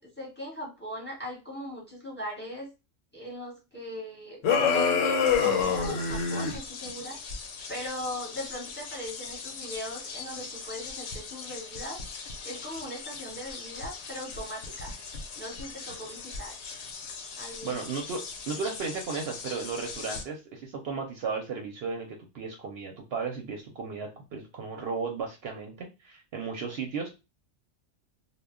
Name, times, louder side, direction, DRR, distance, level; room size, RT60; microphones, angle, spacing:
voice 1, 0.0-2.7 3.1-7.2 7.7-12.0 12.4-14.9 15.4-16.6 17.4-17.8, equal, 10° left, -2 dB, 0.8 m, -39 dB
sound 1, 4.4-6.6, left 6 dB, 90° left, 1.0 m, -25 dB
sound 2, 5.2-20.2, left 4 dB, 65° left, 0.8 m, -40 dB
voice 2, 17.6-18.2 18.5-27.1, right 5 dB, 65° right, 2 dB, 0.7 m, -35 dB
2.2 x 2.1 x 3.5 m, 0.27 s
omnidirectional pair, 1.3 m